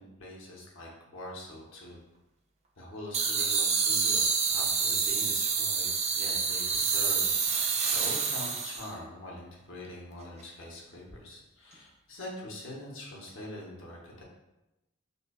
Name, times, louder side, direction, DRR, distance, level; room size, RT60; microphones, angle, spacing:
voice 1, 0.0-2.0 2.8-5.9 6.1-7.3 7.9-14.2, left 1 dB, 65° left, -2 dB, 0.9 m, -43 dB
sound 1, 3.1-8.9, right 5 dB, 30° right, 0.3 m, -28 dB
5.2 x 2.2 x 2.3 m, 0.97 s
head